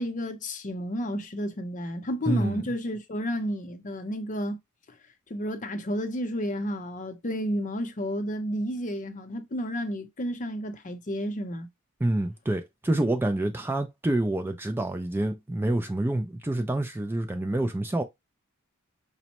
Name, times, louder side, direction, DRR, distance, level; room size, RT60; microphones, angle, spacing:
voice 1, 0.0-4.6 5.3-11.7, equal, 40° left, 0.6 m, -31 dB
voice 2, 2.3-2.6 12.0-18.0, right 1 dB, 10° right, 0.3 m, -27 dB
5.2 x 2.1 x 2.8 m
head